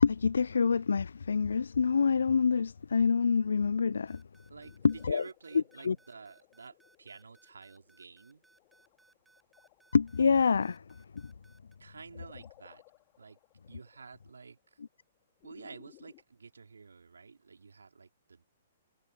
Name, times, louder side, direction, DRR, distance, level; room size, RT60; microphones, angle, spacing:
voice 1, 0.0-4.2 4.8-5.2 5.9-6.0 9.9-10.8, left 5 dB, 75° left, 0.4 m, -26 dB
sound 1, 4.1-11.8, right 3 dB, 5° right, 4.9 m, -65 dB
sound 2, 4.2-16.2, left 36 dB, 35° left, 2.8 m, -62 dB
voice 2, 4.5-8.4 11.8-12.8 13.2-13.4 13.7-14.8 15.4-18.4, right 5 dB, 75° right, 3.7 m, -50 dB
figure-of-eight pair, 120°, 0 cm